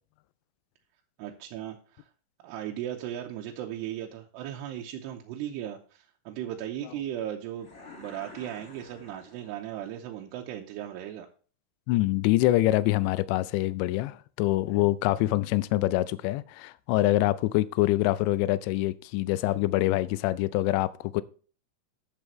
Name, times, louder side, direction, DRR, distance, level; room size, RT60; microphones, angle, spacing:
voice 1, 1.2-2.1 2.4-7.7 8.0-11.3, right 11 dB, 80° right, 2.7 m, -37 dB
sound 1, 7.6-9.9, left 3 dB, 60° left, 0.7 m, -50 dB
voice 2, 11.9-21.2, left 17 dB, 85° left, 2.7 m, -25 dB
12.0 x 7.3 x 3.1 m
omnidirectional pair, 5.2 m